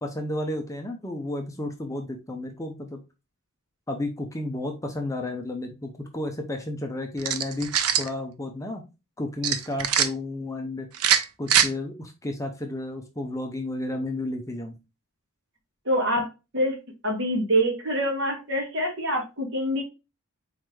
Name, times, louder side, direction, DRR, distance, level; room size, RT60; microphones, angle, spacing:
voice 1, 0.0-3.0 3.9-8.8 9.2-10.9 11.4-14.8, left 1 dB, 15° left, 3 dB, 0.6 m, -32 dB
sound 1, 7.2-8.1 9.4-10.1 10.9-11.7, right 9 dB, 85° right, 0.6 m, -22 dB
voice 2, 15.9-16.3 16.5-16.8 17.0-19.8, equal, 55° right, 1 dB, 1.8 m, -25 dB
4.4 x 3.8 x 3.2 m, 0.27 s
head